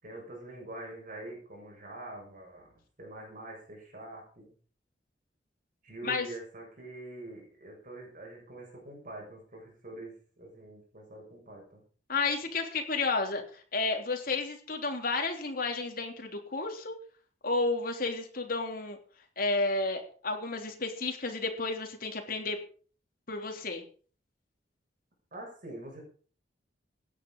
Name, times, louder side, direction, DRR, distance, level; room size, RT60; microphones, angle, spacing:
voice 1, 0.0-4.5 5.8-11.8 25.3-26.0, right 2 dB, 50° right, -1 dB, 6.8 m, -45 dB
voice 2, 12.1-17.0 17.4-19.0 19.4-22.6 23.3-23.8, left 3 dB, 50° left, 3 dB, 3.3 m, -32 dB
16.5 x 10.5 x 5.5 m, 0.42 s
head